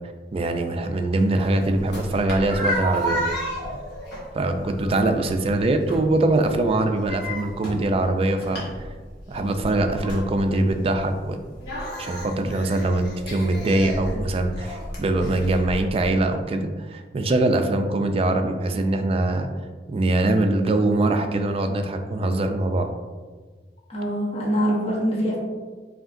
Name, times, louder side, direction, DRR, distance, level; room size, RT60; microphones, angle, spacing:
voice 1, 0.3-3.2 4.3-8.7 9.3-11.4 12.0-19.5 19.9-22.9, right 2 dB, 35° right, 6 dB, 0.3 m, -23 dB
sound 1, 1.2-16.1, equal, 65° left, 1.2 m, -33 dB
voice 2, 23.9-25.4, equal, 35° left, -5 dB, 1.0 m, -24 dB
5.0 x 2.8 x 2.5 m, 1.4 s
head